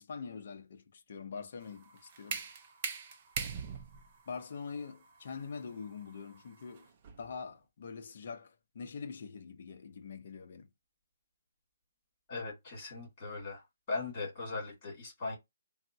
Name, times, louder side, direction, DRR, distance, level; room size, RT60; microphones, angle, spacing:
voice 1, 0.0-2.4 4.3-6.9 7.2-10.7, left 5 dB, 40° left, 0.5 m, -44 dB
sound 1, 1.6-7.4, right 6 dB, 25° right, 0.3 m, -42 dB
voice 2, 12.3-13.6 13.9-15.4, left 3 dB, 15° left, 2.1 m, -39 dB
3.4 x 2.0 x 2.6 m
hypercardioid pair, 180°, 0 cm